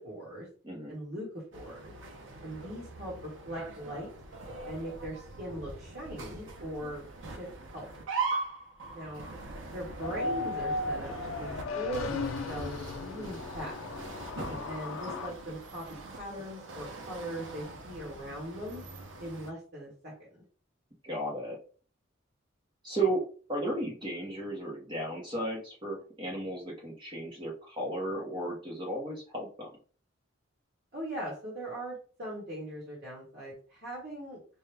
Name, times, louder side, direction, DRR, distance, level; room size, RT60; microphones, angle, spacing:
voice 1, 0.0-0.5 0.9-1.9 2.4-4.1 4.6-8.0 8.9-9.3 9.7-13.8 14.6-18.8 19.2-20.4 30.9-34.4, right 1 dB, 50° right, -4 dB, 1.2 m, -40 dB
voice 2, 0.6-0.9 14.3-14.6 21.0-21.6 22.8-23.2 23.5-29.7, right 2 dB, 25° right, -3 dB, 0.7 m, -34 dB
sound 1, 1.5-19.5, right 3 dB, 70° right, 0.6 m, -42 dB
sound 2, 10.0-15.3, left 3 dB, 85° left, 0.5 m, -36 dB
4.6 x 2.1 x 3.3 m, 0.41 s
head